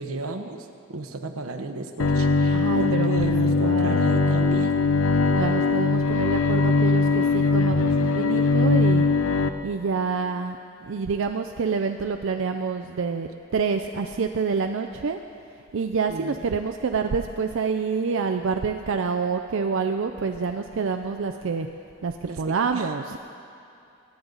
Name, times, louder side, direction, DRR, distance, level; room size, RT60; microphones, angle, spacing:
voice 1, 0.0-4.8 16.1-16.3 22.3-22.9, right 2 dB, 85° right, 5 dB, 1.0 m, -34 dB
Bowed string instrument, 2.0-9.5, left 3 dB, 70° left, 0.6 m, -21 dB
voice 2, 2.5-4.0 5.3-9.1 9.6-10.6 10.9-15.2 15.7-21.7 22.0-23.2, right 5 dB, 65° right, 5 dB, 0.4 m, -27 dB
23.5 x 9.6 x 3.9 m, 2.7 s
head